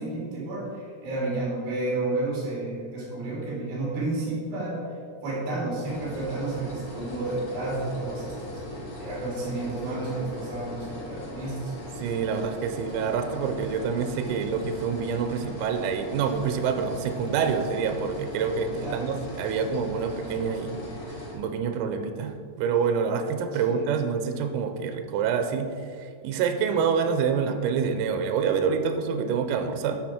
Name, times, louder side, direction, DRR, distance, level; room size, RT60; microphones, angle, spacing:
voice 1, 0.0-4.8 5.2-8.6 9.0-11.7 18.8-19.0 23.6-23.8, right 2 dB, 55° right, -6 dB, 4.6 m, -31 dB
sound 1, 5.8-21.3, left 1 dB, 50° left, 1.5 m, -39 dB
voice 2, 11.7-20.8 21.3-25.7 26.0-30.0, right 6 dB, 85° right, 7 dB, 3.5 m, -27 dB
12.0 x 6.2 x 4.3 m, 2.2 s
omnidirectional pair, 6.0 m